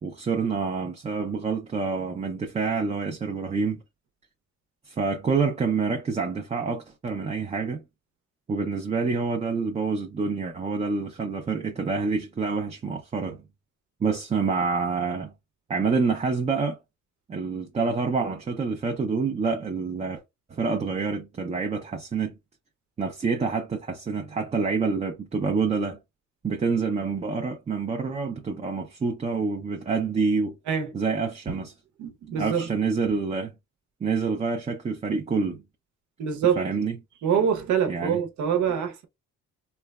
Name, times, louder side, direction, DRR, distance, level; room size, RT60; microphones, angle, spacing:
voice 1, 0.0-3.8 4.9-7.8 8.5-13.4 14.0-15.3 15.7-16.8 17.3-20.2 20.5-22.4 23.0-26.0 26.4-30.6 30.9-31.7 32.4-33.5 34.0-35.6 36.6-37.0 37.9-38.2, right 4 dB, 25° right, 0.4 m, -27 dB
voice 2, 32.0-32.7 36.2-36.7 37.2-39.0, right 7 dB, 75° right, 0.8 m, -25 dB
3.1 x 2.0 x 2.3 m
cardioid pair, 90°, 30 cm